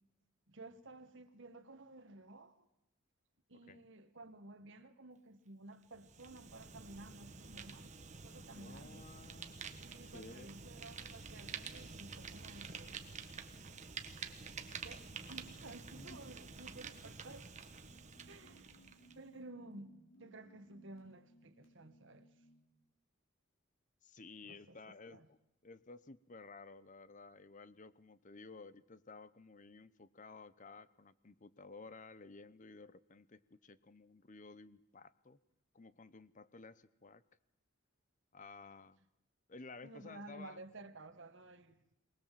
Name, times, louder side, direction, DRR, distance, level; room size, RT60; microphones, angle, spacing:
voice 1, 0.5-2.7 3.5-7.9 8.2-9.1 9.8-13.0 14.8-17.5 18.2-18.7 19.1-22.3 24.4-25.3 39.8-41.8, right 2 dB, 60° right, 1.6 m, -54 dB
Fire, 5.9-19.2, right 5 dB, 35° right, 1.4 m, -49 dB
voice 2, 8.5-9.6 10.0-10.6 12.6-12.7 16.0-16.3 24.0-35.4 35.7-37.2 38.3-39.0 39.5-40.7, left 3 dB, 40° left, 0.8 m, -54 dB
sound 1, 17.8-22.7, right 1 dB, 70° left, 6.0 m, -65 dB
23.5 x 19.5 x 7.6 m
head